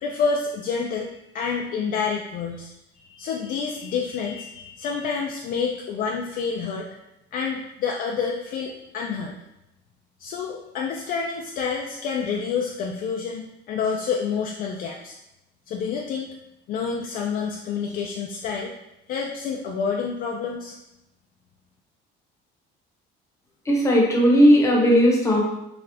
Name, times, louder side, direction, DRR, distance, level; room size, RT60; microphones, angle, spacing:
voice 1, 0.0-2.7 2.9-6.9 7.3-9.4 10.2-15.2 15.7-16.3 16.7-18.7 19.1-20.8, left 5 dB, 45° left, 0 dB, 0.4 m, -28 dB
voice 2, 23.7-25.4, equal, 15° left, -2 dB, 0.8 m, -16 dB
6.0 x 2.4 x 3.4 m, 0.88 s
cardioid pair, 175°, 20 cm